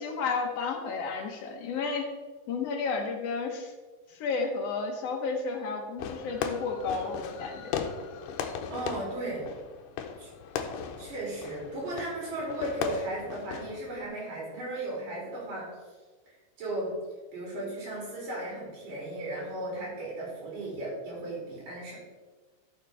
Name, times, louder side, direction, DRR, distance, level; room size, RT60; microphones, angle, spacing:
voice 1, 0.0-2.1 2.5-3.7 4.1-7.8, left 4 dB, 65° left, 3 dB, 1.7 m, -32 dB
Fireworks, 6.0-14.1, left 7 dB, 85° left, 2.2 m, -37 dB
voice 2, 8.7-9.5 10.2-10.3 11.0-15.7 16.6-17.0 17.3-22.0, right 1 dB, 80° right, -5 dB, 4.3 m, -35 dB
12.5 x 6.6 x 3.3 m, 1.3 s
omnidirectional pair, 3.8 m